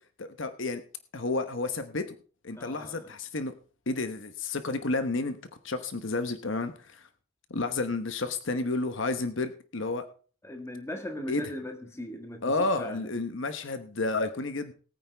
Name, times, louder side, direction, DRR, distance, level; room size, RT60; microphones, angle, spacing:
voice 1, 0.2-0.8 1.1-2.1 2.4-3.5 3.9-5.4 5.6-7.1 7.5-10.1 11.3-11.4 12.4-14.7, left 3 dB, 60° left, 9 dB, 1.0 m, -31 dB
voice 2, 2.6-3.1 10.4-13.1, left 1 dB, 15° left, 4 dB, 1.7 m, -39 dB
19.5 x 9.1 x 3.4 m, 0.39 s
head